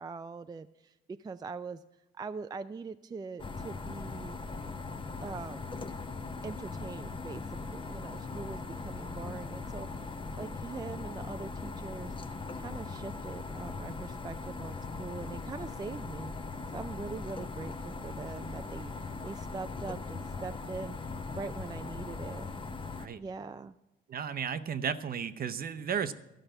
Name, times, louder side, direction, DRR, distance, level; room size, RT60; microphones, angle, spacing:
voice 1, 0.0-1.8 2.2-4.4 5.2-5.6 6.4-12.2 12.5-16.3 16.7-22.5 23.1-23.7, right 4 dB, 20° right, 10 dB, 0.3 m, -42 dB
sound 1, 3.4-23.1, left 4 dB, 25° left, 0.7 m, -40 dB
voice 2, 24.1-26.1, right 7 dB, 50° right, 11 dB, 0.7 m, -34 dB
13.0 x 5.6 x 8.9 m, 0.96 s
cardioid pair, 90°, 20 cm